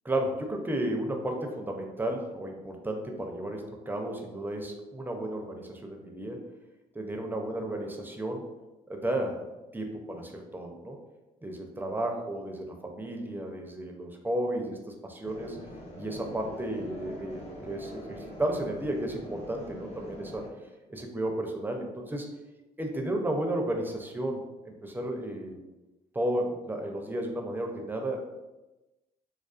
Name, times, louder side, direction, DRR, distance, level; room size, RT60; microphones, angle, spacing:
voice 1, 0.0-6.4 6.9-8.4 8.9-9.4 9.7-11.0 11.4-15.6 16.0-20.4 20.9-22.3 22.8-25.6 26.1-28.3, right 1 dB, 10° right, 2 dB, 0.4 m, -33 dB
sound 1, 15.2-20.5, equal, 40° left, 0.7 m, -44 dB
2.3 x 2.3 x 2.4 m, 1.1 s
supercardioid pair, 70°, 16 cm